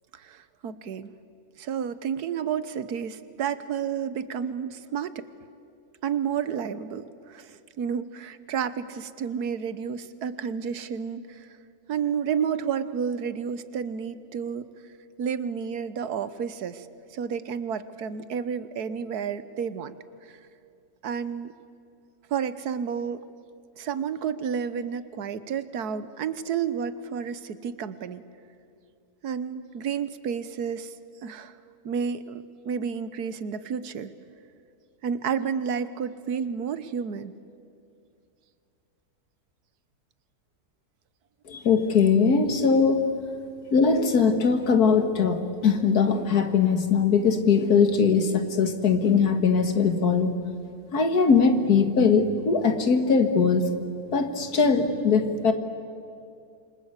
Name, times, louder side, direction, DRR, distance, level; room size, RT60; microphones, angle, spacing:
voice 1, 0.1-1.1 1.6-5.3 6.0-11.5 11.9-14.7 15.2-16.9 17.1-19.9 20.3-20.4 21.0-21.5 22.3-23.2 23.8-28.2 29.2-31.0 31.2-31.6 31.8-34.1 35.0-37.3, right 7 dB, 90° right, 14 dB, 1.5 m, -31 dB
voice 2, 41.5-43.1 43.7-50.4 50.9-53.6 54.1-55.5, left 5 dB, 75° left, 8 dB, 2.1 m, -21 dB
27.0 x 25.5 x 8.1 m, 2.4 s
omnidirectional pair, 1.6 m